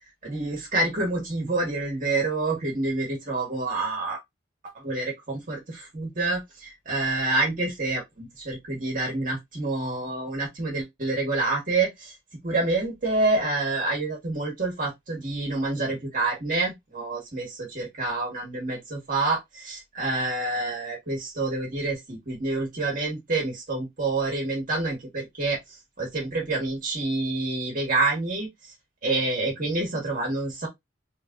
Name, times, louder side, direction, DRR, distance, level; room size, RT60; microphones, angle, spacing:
voice 1, 0.2-4.2 4.7-12.1 12.4-25.6 26.0-28.5 29.0-30.7, right 2 dB, 45° right, 1.3 m, -27 dB
3.2 x 3.2 x 2.3 m
head